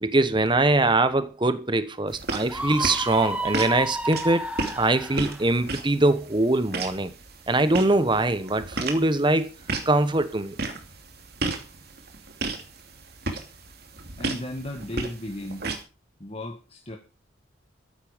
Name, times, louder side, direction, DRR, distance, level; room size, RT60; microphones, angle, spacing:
voice 1, 0.0-4.5 4.8-7.1 7.5-9.5 9.8-10.6, right 2 dB, 25° right, 1.1 m, -22 dB
sound 1, 2.1-15.8, right 3 dB, 55° right, 2.8 m, -35 dB
Screaming, 2.5-5.4, right 1 dB, 5° right, 1.5 m, -31 dB
voice 2, 14.2-15.7 16.2-17.0, left 1 dB, 30° left, 1.7 m, -35 dB
14.0 x 11.0 x 5.1 m
head